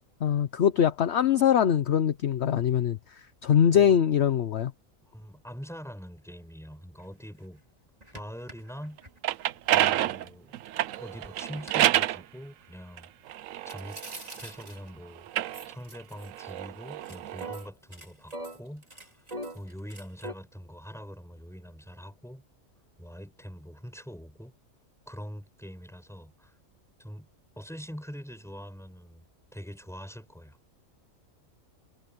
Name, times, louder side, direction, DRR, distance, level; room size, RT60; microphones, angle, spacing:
voice 1, 0.2-4.7, left 9 dB, 60° left, 1.0 m, -23 dB
voice 2, 5.0-7.6 8.1-9.0 9.7-10.5 11.0-13.1 13.6-14.0 14.4-15.3 15.7-19.1 19.5-22.4 23.0-24.5 25.1-26.6 27.0-27.3 27.6-29.2 29.5-30.6, equal, ahead, 5.7 m, -43 dB
sound 1, 7.0-7.1 7.5-7.6 8.0-10.3 10.7-12.0 13.7-15.0 15.5-16.6 16.9-20.3, right 1 dB, 30° right, 4.0 m, -43 dB
sound 2, 9.0-12.2 13.0-14.7 15.2-17.5, right 13 dB, 80° right, 1.0 m, -28 dB
omnidirectional pair, 1.4 m